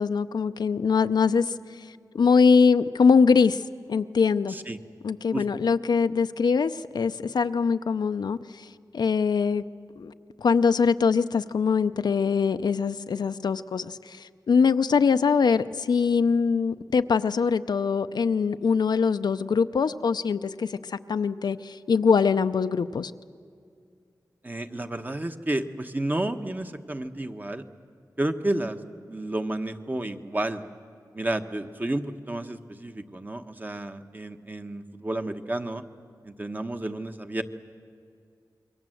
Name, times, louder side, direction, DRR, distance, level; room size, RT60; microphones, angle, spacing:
voice 1, 0.0-3.6 3.9-4.6 5.0-9.6 10.0-10.1 10.4-23.1, left 5 dB, 85° left, 0.6 m, -23 dB
voice 2, 24.4-27.6 28.2-28.8 29.1-30.6 31.1-35.8 36.2-37.4, right 1 dB, 25° right, 1.2 m, -31 dB
27.0 x 22.5 x 7.8 m
wide cardioid pair, 80°, 7 cm